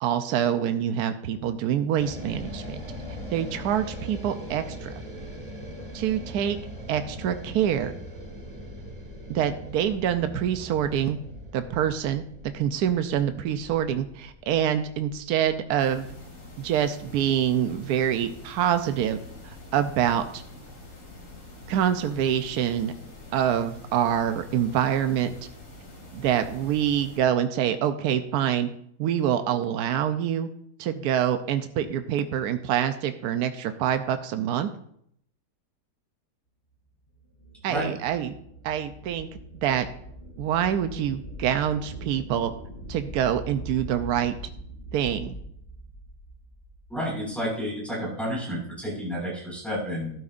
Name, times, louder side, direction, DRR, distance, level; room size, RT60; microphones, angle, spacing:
voice 1, 0.0-2.8 3.3-4.9 5.9-6.6 6.9-7.9 9.3-11.2 11.5-16.1 16.6-20.4 21.7-22.9 23.3-25.3 26.1-28.7 29.0-30.5 30.8-34.7 37.6-38.4 38.6-39.3 39.6-39.9 40.4-42.5 42.9-44.4 44.9-45.3, right 9 dB, 80° right, 8 dB, 1.2 m, -26 dB
sound 1, 2.0-16.2, equal, 25° right, 1.6 m, -41 dB
sound 2, 15.8-27.2, left 2 dB, 75° left, 3.2 m, -45 dB
sound 3, 37.1-47.2, right 1 dB, 35° left, 4.0 m, -42 dB
voice 2, 46.9-50.1, equal, ahead, -5 dB, 5.2 m, -30 dB
12.5 x 12.0 x 2.5 m, 0.70 s
omnidirectional pair, 1.7 m